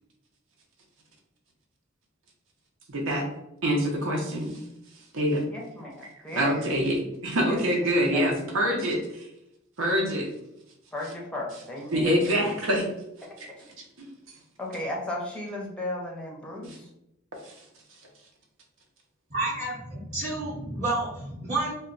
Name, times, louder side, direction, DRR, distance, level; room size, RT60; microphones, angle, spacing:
voice 1, 2.9-3.2 3.6-4.5 5.1-5.4 6.3-9.0 9.8-10.3 11.9-12.8, equal, 90° right, 0 dB, 0.7 m, -25 dB
voice 2, 5.5-6.8 7.5-7.6 8.1-8.6 10.9-12.6 14.6-16.9, left 2 dB, 5° left, -2 dB, 0.5 m, -35 dB
voice 3, 19.3-21.7, right 2 dB, 35° right, -8 dB, 0.7 m, -30 dB
2.2 x 2.2 x 3.7 m, 0.84 s
head